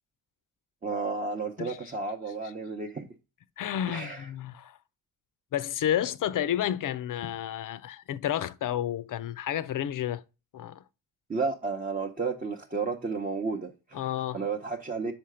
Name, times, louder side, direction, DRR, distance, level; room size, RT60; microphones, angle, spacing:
voice 1, 0.8-3.1 3.9-4.3 11.3-14.0 14.3-15.1, right 4 dB, 25° right, 0.8 m, -32 dB
voice 2, 1.6-1.9 3.6-4.8 5.5-10.2 10.5-10.8 13.9-14.5, left 11 dB, 55° left, 0.5 m, -31 dB
5.7 x 4.4 x 4.9 m
cardioid pair, 85°, 38 cm